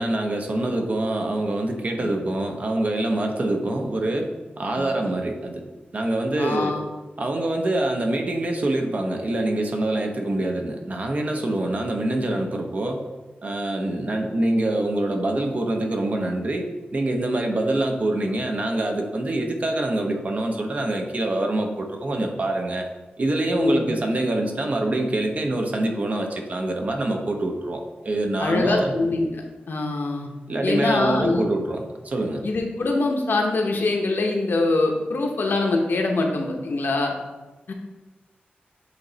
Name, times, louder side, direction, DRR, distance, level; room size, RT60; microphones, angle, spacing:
voice 1, 0.0-4.3 4.6-5.6 5.9-6.7 7.2-13.1 13.4-16.7 16.9-22.9 23.2-28.9 30.5-32.4, right 1 dB, 40° right, 3 dB, 0.7 m, -25 dB
voice 2, 6.4-6.9 13.9-14.0 23.5-23.9 28.4-30.3 30.6-31.5 32.4-37.1 37.7-37.8, left 2 dB, 65° left, 2 dB, 0.9 m, -24 dB
7.9 x 3.0 x 4.0 m, 1.1 s
wide cardioid pair, 140°, 4 cm